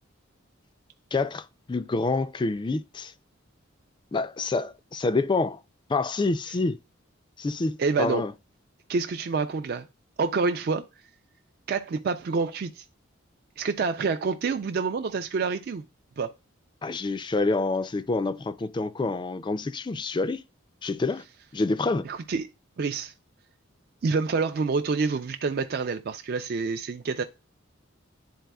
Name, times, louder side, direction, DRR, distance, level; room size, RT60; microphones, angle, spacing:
voice 1, 1.1-3.1 4.1-5.6 5.9-6.8 7.4-8.3 16.8-20.4 20.8-21.2 21.5-22.1, left 3 dB, 25° left, 0.3 m, -27 dB
voice 2, 7.8-8.2 8.9-9.9 10.2-10.8 11.7-12.8 13.6-15.8 16.2-16.3 22.0-22.5 22.8-23.1 24.0-27.2, right 4 dB, 50° right, 0.4 m, -27 dB
10.5 x 4.1 x 2.3 m
head